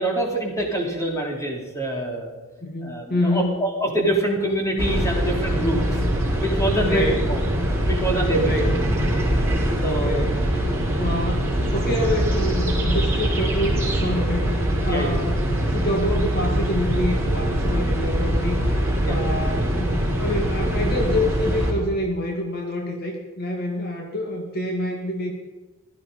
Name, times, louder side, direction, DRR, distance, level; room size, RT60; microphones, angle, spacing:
voice 1, 0.0-2.3 2.8-6.0 6.4-7.4 7.8-8.7 9.8-10.3 14.9-15.1 19.0-19.2, right 1 dB, 15° left, 0 dB, 3.1 m, -25 dB
voice 2, 2.6-3.6 6.8-7.2 8.4-8.7 9.8-10.4 11.0-14.5 14.8-15.4 15.6-18.6 19.1-25.3, left 1 dB, 45° left, 2 dB, 1.9 m, -27 dB
sound 1, 4.8-21.7, right 1 dB, 10° right, 4.9 m, -23 dB
16.5 x 13.5 x 5.1 m, 1.2 s
head